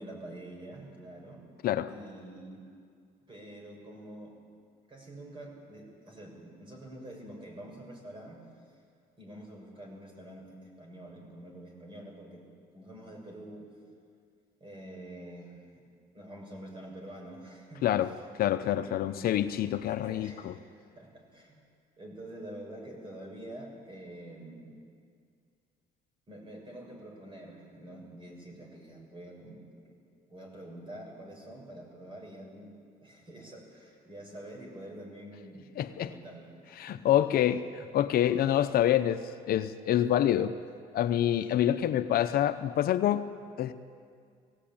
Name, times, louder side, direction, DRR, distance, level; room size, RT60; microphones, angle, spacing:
voice 1, 0.0-1.4 1.9-2.6 3.3-4.4 4.9-8.4 9.2-12.5 12.7-13.7 14.6-15.8 16.1-18.0 18.6-20.6 20.9-21.6 22.0-24.8 26.3-30.0 30.3-32.8 33.0-35.7 36.0-37.0 40.0-40.1 41.0-41.1 41.5-41.7, right 1 dB, 30° right, 0 dB, 6.6 m, -47 dB
voice 2, 18.4-20.5 35.8-36.1 36.8-40.5 40.9-43.3 43.6-43.7, left 11 dB, 65° left, 10 dB, 0.8 m, -27 dB
19.0 x 17.5 x 8.8 m, 2.2 s
cardioid pair, 110°, 17 cm